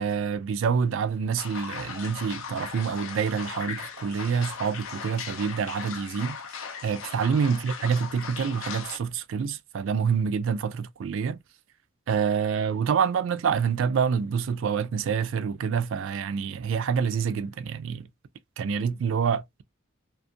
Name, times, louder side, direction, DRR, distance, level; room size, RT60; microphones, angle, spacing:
voice 1, 0.0-6.4 6.8-11.4 12.1-18.1 18.6-19.6, right 6 dB, 65° right, 0.3 m, -27 dB
sound 1, 1.4-9.0, left 6 dB, 75° left, 0.5 m, -38 dB
2.5 x 2.3 x 2.6 m
head